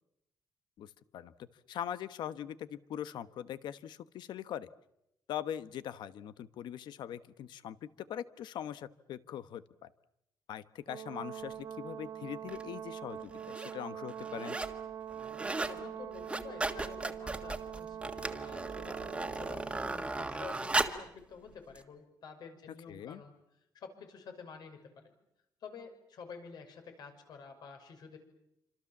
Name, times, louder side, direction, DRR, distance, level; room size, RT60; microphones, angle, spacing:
voice 1, 0.8-1.3 1.7-4.7 5.3-9.9 10.5-14.6 22.9-23.2, left 10 dB, 85° left, 13 dB, 1.2 m, -42 dB
Brass instrument, 10.9-19.8, right 9 dB, 60° right, 2.2 m, -43 dB
sound 1, 12.5-12.6 13.3-13.7 14.1-14.8 15.1-15.8 16.1-21.1 21.8-21.9, right 2 dB, 15° right, 1.7 m, -36 dB
voice 2, 15.6-23.3 23.7-24.8 25.6-28.2, left 5 dB, 65° left, 6 dB, 6.1 m, -50 dB
27.5 x 26.5 x 7.3 m, 0.82 s
cardioid pair, 145°, 7 cm